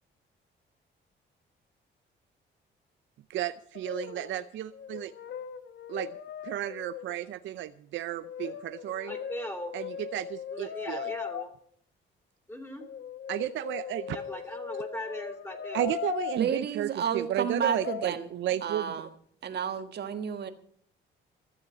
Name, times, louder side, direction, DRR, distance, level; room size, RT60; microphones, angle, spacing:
voice 1, 3.3-5.1 5.9-6.1 6.4-9.1 9.7-11.1 13.3-14.2 15.7-18.9, right 12 dB, 75° right, 12 dB, 0.6 m, -33 dB
Brass instrument, 3.8-4.4 4.7-7.2 8.2-11.4 12.8-16.6 17.6-18.1, left 9 dB, 65° left, 1.0 m, -39 dB
voice 2, 9.1-9.7 10.5-11.5 12.5-12.8 14.1-15.9, equal, 10° left, 5 dB, 3.0 m, -39 dB
voice 3, 16.3-18.3 18.6-19.1 19.4-20.5, right 7 dB, 55° right, 8 dB, 1.4 m, -31 dB
14.0 x 7.4 x 7.8 m, 0.64 s
cardioid pair, 90°, 20 cm